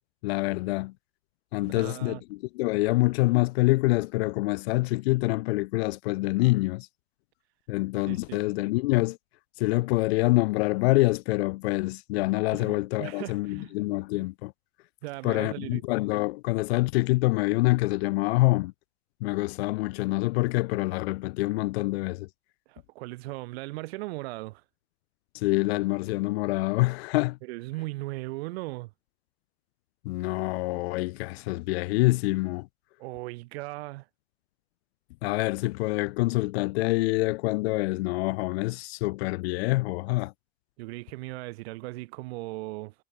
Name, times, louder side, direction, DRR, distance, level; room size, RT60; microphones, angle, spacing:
voice 1, 0.2-0.9 1.5-6.9 7.7-9.2 9.6-14.5 15.2-18.7 19.2-22.3 25.3-27.4 30.0-32.7 35.2-40.3, left 21 dB, 85° left, 0.8 m, -26 dB
voice 2, 1.6-2.2 8.1-8.4 12.5-13.8 14.1-14.3 15.0-15.8 22.7-24.6 27.4-28.9 33.0-34.1 40.8-42.9, right 21 dB, 85° right, 5.9 m, -38 dB
supercardioid pair, 90°, 30 cm